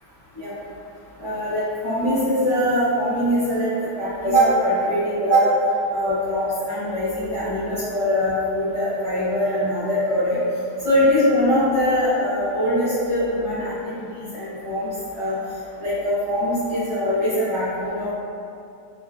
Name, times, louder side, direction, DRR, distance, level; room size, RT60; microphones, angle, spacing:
voice 1, 1.2-3.7 4.0-5.5 5.9-10.4 10.8-14.9 15.1-15.4 15.8-18.1, equal, 35° right, -16 dB, 0.6 m, -22 dB
3.7 x 2.4 x 2.4 m, 2.6 s
omnidirectional pair, 2.2 m